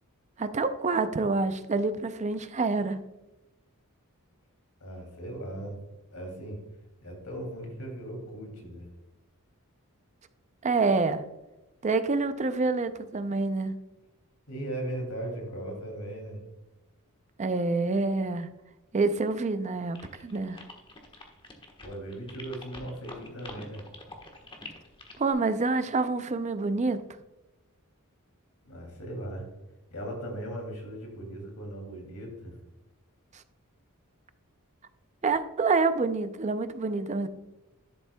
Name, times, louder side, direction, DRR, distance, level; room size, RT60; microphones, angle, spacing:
voice 1, 0.4-3.0 10.6-11.2 11.8-13.7 17.4-18.5 18.9-20.6 25.2-27.0 35.2-37.3, right 3 dB, 30° right, 0.5 m, -27 dB
voice 2, 4.8-5.8 6.1-6.6 7.0-8.9 14.5-16.4 21.8-23.9 28.6-29.5 29.9-32.5, right 1 dB, 90° left, 2.9 m, -38 dB
sound 1, 19.9-25.3, left 2 dB, 25° left, 1.3 m, -46 dB
11.5 x 7.1 x 2.3 m
head